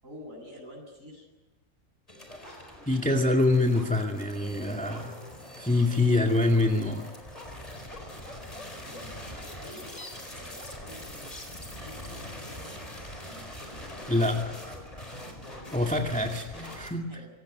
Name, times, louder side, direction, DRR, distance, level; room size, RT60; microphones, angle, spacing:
voice 1, 0.0-1.3 8.8-9.2 9.5-11.1 11.8-12.8 17.1-17.3, equal, 60° right, 1 dB, 8.2 m, -47 dB
sound 1, 2.1-16.9, left 1 dB, 25° left, 4.8 m, -43 dB
voice 2, 2.9-5.2 5.6-7.0 14.1-14.4 15.7-17.0, left 2 dB, 5° left, 2 dB, 2.1 m, -25 dB
26.0 x 18.0 x 9.4 m, 1.1 s
omnidirectional pair, 1.6 m